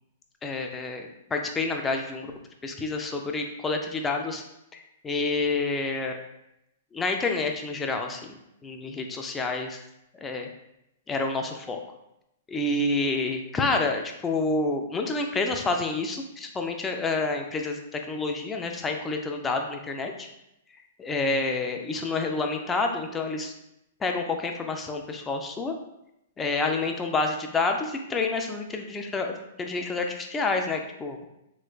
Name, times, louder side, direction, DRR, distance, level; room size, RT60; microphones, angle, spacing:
voice 1, 0.4-2.3 2.6-4.4 4.7-6.2 6.9-9.8 10.2-10.5 11.1-11.8 12.5-20.3 21.0-23.5 24.0-25.7 26.4-31.3, left 3 dB, 15° left, 3 dB, 0.4 m, -28 dB
3.2 x 3.0 x 2.3 m, 0.84 s
hypercardioid pair, 125°, 0 cm